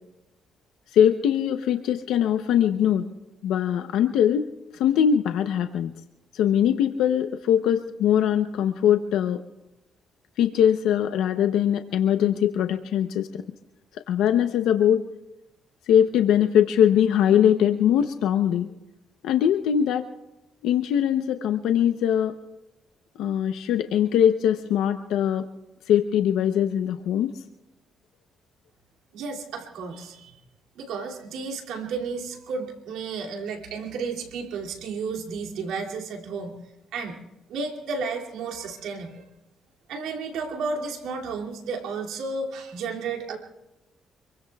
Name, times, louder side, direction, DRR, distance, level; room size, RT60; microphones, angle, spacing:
voice 1, 0.9-3.1 3.4-4.4 4.7-5.9 6.3-9.4 10.4-13.4 14.1-15.0 15.9-18.7 19.2-20.0 20.6-22.3 23.2-25.4 25.9-27.3, left 9 dB, 85° left, 8 dB, 0.7 m, -21 dB
voice 2, 29.1-30.4 30.8-36.6 36.9-37.2 37.5-39.2 39.9-43.4, right 4 dB, 90° right, 0 dB, 2.5 m, -32 dB
27.5 x 22.5 x 2.3 m, 0.96 s
cardioid pair, 90°, 0 cm